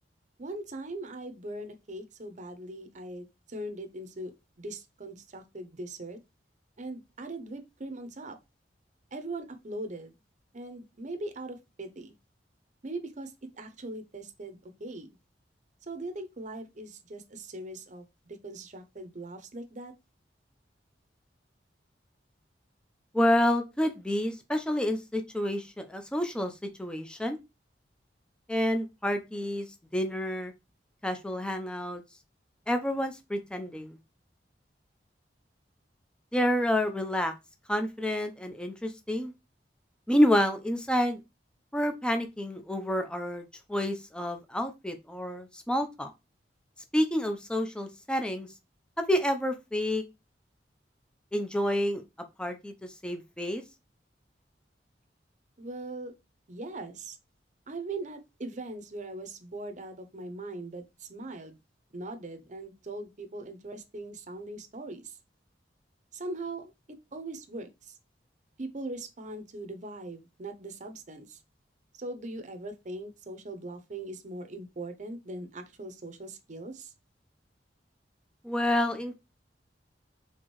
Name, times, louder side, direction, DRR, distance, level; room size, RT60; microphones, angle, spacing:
voice 1, 0.4-6.2 6.8-8.4 9.1-10.1 10.5-12.1 12.8-15.1 15.9-19.9 55.6-56.1 56.5-57.2 57.7-61.6 61.9-65.2 66.1-66.7 67.1-67.9 68.6-71.4 71.9-76.9, right 2 dB, 45° right, 0.7 m, -40 dB
voice 2, 23.1-26.5 26.8-27.4 28.5-29.7 29.9-30.5 31.0-32.0 32.7-34.0 36.3-37.3 37.7-39.3 40.1-41.2 41.7-46.1 46.9-48.5 49.1-50.0 51.3-52.0 52.4-53.6 78.4-79.1, left 1 dB, 5° left, 0.6 m, -28 dB
4.5 x 3.6 x 3.0 m
head